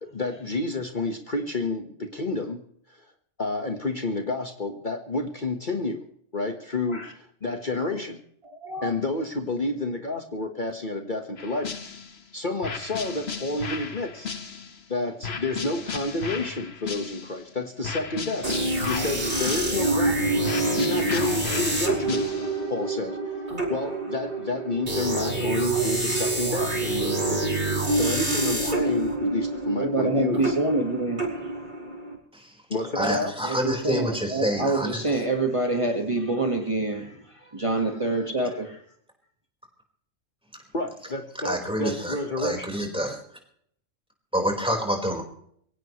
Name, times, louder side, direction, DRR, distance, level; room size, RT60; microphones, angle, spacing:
voice 1, 0.0-2.6 2.9-3.0 3.4-6.1 6.3-8.2 8.8-11.9 12.3-14.3 14.9-20.4 20.8-22.3 22.7-23.2 23.7-27.4 27.9-30.6 32.7-33.3 40.7-42.7, left 2 dB, 40° left, 4 dB, 1.6 m, -30 dB
sound 1, 11.4-12.2 12.6-14.8 15.2-17.4 17.8-20.1 20.4-22.7, left 5 dB, 55° left, 1.6 m, -35 dB
sound 2, 18.4-32.2, right 2 dB, 45° right, 5.4 m, -27 dB
voice 2, 29.8-31.5 33.4-37.2 37.5-38.8, right 2 dB, 25° right, 2 dB, 1.8 m, -26 dB
voice 3, 32.9-35.2 41.4-43.2 44.3-45.2, equal, 5° right, 1 dB, 4.8 m, -27 dB
23.5 x 17.5 x 3.2 m, 0.65 s
omnidirectional pair, 1.3 m